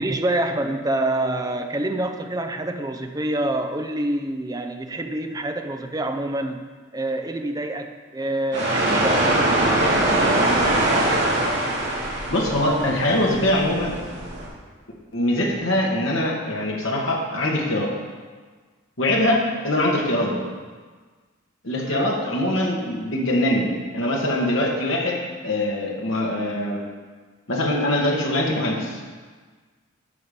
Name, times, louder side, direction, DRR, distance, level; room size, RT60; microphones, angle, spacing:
voice 1, 0.0-9.6 21.8-22.1, right 1 dB, 20° right, 6 dB, 0.6 m, -27 dB
sound 1, 8.5-14.5, right 1 dB, 55° right, 3.2 m, -22 dB
voice 2, 12.3-14.0 15.1-17.9 19.0-20.4 21.6-26.8 27.5-29.0, left 1 dB, 65° left, -2 dB, 2.0 m, -23 dB
9.5 x 5.6 x 6.9 m, 1.5 s
head